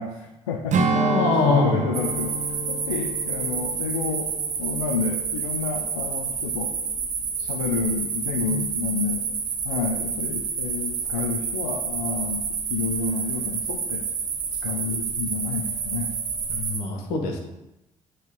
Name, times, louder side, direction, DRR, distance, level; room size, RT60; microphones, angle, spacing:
voice 1, 0.0-2.3 2.7-4.3 4.6-6.7 7.4-9.2 9.6-14.0 14.6-16.1, left 5 dB, 85° left, 2 dB, 0.5 m, -30 dB
Strum, 0.7-5.4 5.8-6.0, right 3 dB, 50° right, 1.0 m, -28 dB
voice 2, 0.9-1.8 8.4-8.6 16.5-17.4, left 3 dB, 70° left, 2 dB, 1.3 m, -23 dB
sound 1, 1.9-16.8, right 6 dB, 90° right, 0.9 m, -29 dB
7.9 x 3.2 x 5.3 m, 0.94 s
hypercardioid pair, 45°, 16 cm